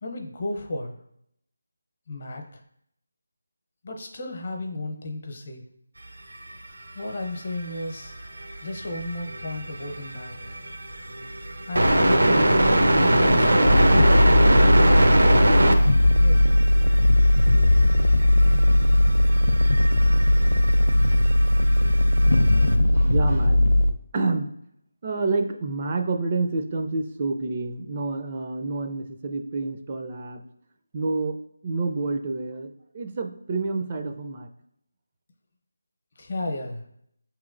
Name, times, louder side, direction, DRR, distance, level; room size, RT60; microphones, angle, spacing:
voice 1, 0.0-0.9 2.1-2.6 3.8-5.6 6.9-8.2 8.6-10.5 11.7-14.1 16.0-16.5 36.2-36.8, left 2 dB, 50° left, 3 dB, 0.8 m, -33 dB
sound 1, 7.0-7.1 7.6-7.7 8.0-22.7, right 1 dB, 90° right, 0.7 m, -23 dB
sound 2, 13.6-23.9, left 1 dB, 70° left, 0.3 m, -18 dB
voice 2, 23.0-23.6 24.1-24.5 25.0-30.4 30.9-31.4 31.6-34.5, right 3 dB, 30° right, 5 dB, 0.4 m, -28 dB
5.5 x 3.0 x 2.5 m, 0.72 s
figure-of-eight pair, 170°, 0 cm